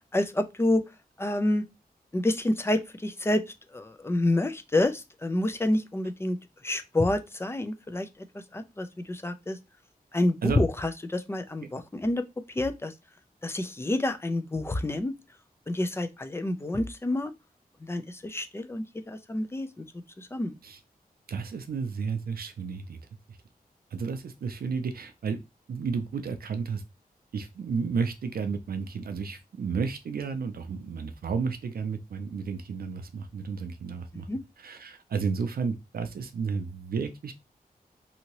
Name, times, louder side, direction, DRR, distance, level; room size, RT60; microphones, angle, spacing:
voice 1, 0.1-0.8 1.2-1.6 2.1-3.4 3.7-6.4 6.6-8.1 8.5-9.6 10.1-12.2 12.5-12.9 13.4-15.1 15.7-17.3 17.8-19.8 20.2-20.5 34.1-34.4, left 1 dB, 15° left, 0.4 m, -28 dB
voice 2, 21.3-23.0 23.9-25.4 25.7-26.8 27.3-34.3 34.6-37.3, right 5 dB, 75° right, 0.4 m, -32 dB
2.8 x 2.7 x 2.9 m
wide cardioid pair, 110°, 16 cm